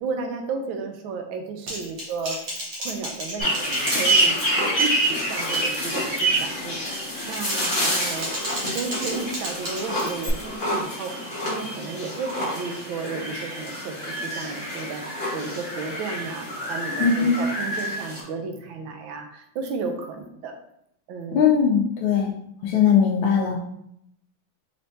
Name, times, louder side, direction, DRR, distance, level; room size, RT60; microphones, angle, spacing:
voice 1, 0.0-2.4 2.8-8.4 8.7-20.5 21.1-21.4, right 4 dB, 85° right, 4 dB, 1.4 m, -33 dB
Typing, 1.7-4.8 5.2-5.5 5.9-6.3 7.1-10.3, equal, 50° right, 1.4 m, -34 dB
sound 1, 3.4-18.2, right 1 dB, 30° left, 1.4 m, -27 dB
voice 2, 17.0-17.4 21.3-22.3 22.6-23.6, left 7 dB, 80° left, -1 dB, 1.4 m, -20 dB
4.3 x 3.3 x 2.7 m, 0.74 s
omnidirectional pair, 2.1 m